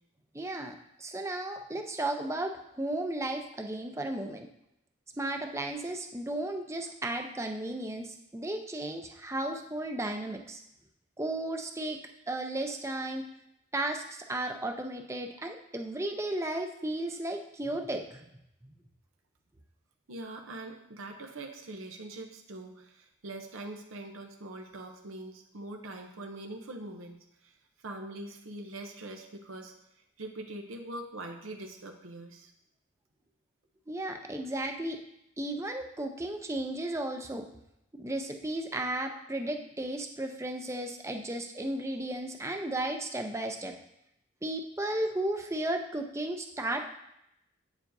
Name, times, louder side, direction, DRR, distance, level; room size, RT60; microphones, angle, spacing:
voice 1, 0.3-4.5 5.2-10.6 11.2-12.0 12.3-13.2 13.7-18.3 33.9-35.0 35.4-37.5 38.0-43.8 44.4-46.8, right 1 dB, 15° right, 4 dB, 0.6 m, -34 dB
voice 2, 20.1-27.6 27.8-29.7 30.2-32.5, right 2 dB, 90° right, 3 dB, 0.8 m, -43 dB
9.1 x 7.1 x 2.7 m, 0.80 s
head